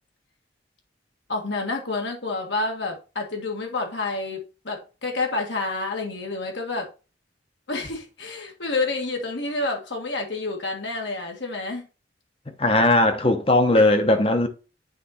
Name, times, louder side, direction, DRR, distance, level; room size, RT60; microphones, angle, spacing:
voice 1, 1.3-6.9 7.7-11.8 13.7-13.8, left 3 dB, 70° left, 1.7 m, -29 dB
voice 2, 12.6-14.5, left 2 dB, 30° left, 0.9 m, -18 dB
9.0 x 4.0 x 4.2 m
head